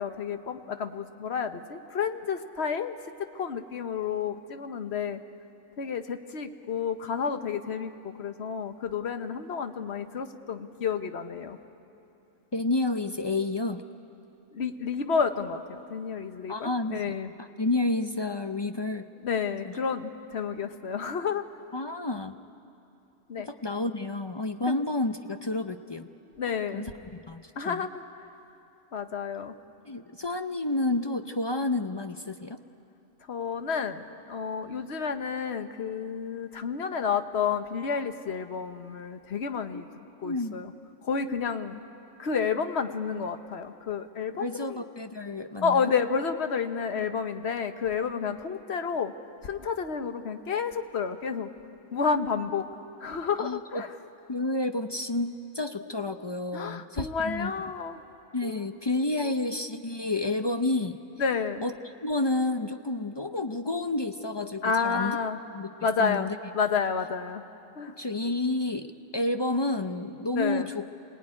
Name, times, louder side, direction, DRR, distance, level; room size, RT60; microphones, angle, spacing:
voice 1, 0.0-3.0 3.3-5.2 5.8-11.6 14.5-17.3 19.2-21.4 23.3-23.5 24.7-24.8 26.4-26.9 27.6-28.3 28.9-29.6 33.3-39.9 40.2-40.7 41.0-41.8 42.2-44.8 45.6-49.1 49.4-51.5 51.9-52.6 53.0-53.9 56.5-58.0 58.4-58.6 59.2-59.3 61.2-61.6 64.6-65.4 65.8-66.3 66.5-67.4 67.8-67.9 70.3-70.7, left 6 dB, 55° left, 8 dB, 1.2 m, -30 dB
voice 2, 12.5-13.8 16.5-17.1 17.4-19.1 19.6-19.7 21.7-22.4 23.4-26.1 26.4-26.9 27.3-27.9 29.8-32.6 39.7-39.8 40.2-40.6 44.4-45.9 53.4-53.8 54.3-57.5 58.3-61.0 61.6-61.7 62.0-65.2 65.5-65.7 66.0-66.4 68.0-70.9, left 2 dB, 35° left, 8 dB, 0.4 m, -30 dB
27.0 x 18.5 x 9.8 m, 2.8 s
omnidirectional pair, 1.4 m